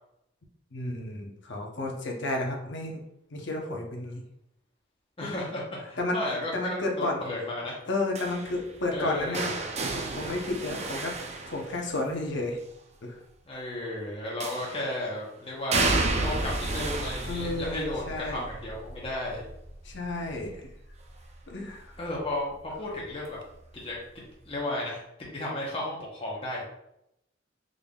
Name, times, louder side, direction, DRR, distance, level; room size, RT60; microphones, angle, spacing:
voice 1, 0.7-3.0 3.3-4.2 5.2-5.3 6.0-6.2 6.5-7.2 7.9-9.7 10.1-11.2 11.5-12.6 13.0-13.2 17.3-18.4 19.8-20.7 21.5-22.0, left 2 dB, 65° left, 1 dB, 0.8 m, -32 dB
voice 2, 5.2-7.8 8.9-9.5 13.5-19.4 22.0-23.4 23.7-26.6, left 1 dB, 30° left, -4 dB, 0.9 m, -34 dB
sound 1, 8.1-12.2 14.4-15.0 15.7-21.5 21.9-22.3 23.5-23.6, right 3 dB, 35° right, 0.5 m, -32 dB
3.8 x 3.5 x 2.3 m, 0.81 s
head